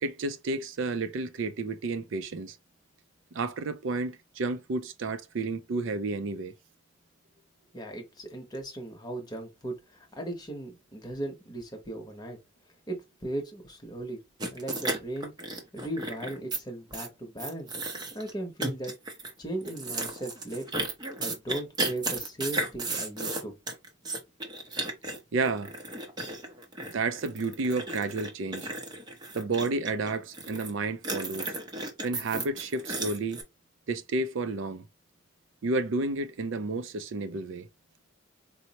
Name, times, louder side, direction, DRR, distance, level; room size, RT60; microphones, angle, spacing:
voice 1, 0.0-2.6 3.3-6.5 25.3-25.7 26.9-28.7 29.3-31.5 32.0-33.4 33.9-34.8 35.6-37.7, right 3 dB, 65° right, 0.4 m, -31 dB
voice 2, 7.7-12.4 12.9-14.2 14.5-17.8 18.1-18.9 19.4-20.9 21.2-23.5, right 1 dB, 20° left, 0.9 m, -37 dB
sound 1, 14.4-16.6 16.9-17.1 17.4-18.3 18.6-19.3 19.6-30.7 31.0-33.4, right 2 dB, 20° right, 0.6 m, -34 dB
4.3 x 2.1 x 2.8 m
head